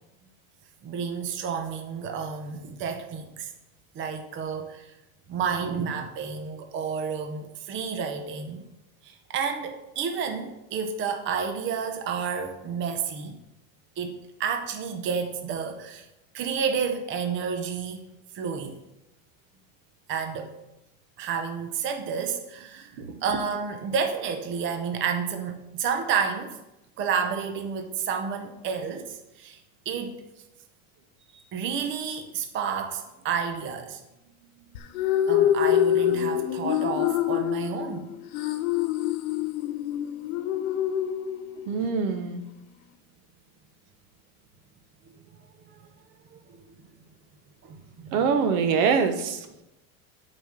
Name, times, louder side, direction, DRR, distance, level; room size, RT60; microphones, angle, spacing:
voice 1, 0.8-3.5 3.9-4.9 5.3-8.6 9.0-13.4 14.0-16.1 16.3-18.1 18.3-18.8 20.1-20.5 21.2-26.6 27.0-29.6 29.9-30.2 31.3-34.0 35.3-38.1 41.7-41.9 45.7-45.8 46.3-46.6 47.6-47.8 48.0-48.2, right 6 dB, 25° right, 6 dB, 0.7 m, -30 dB
sound 1, 34.7-41.8, left 11 dB, 80° left, 1.1 m, -25 dB
voice 2, 41.7-42.4 48.1-49.6, right 6 dB, 65° right, 8 dB, 1.3 m, -24 dB
9.2 x 5.0 x 7.4 m, 0.93 s
cardioid pair, 155°, 43 cm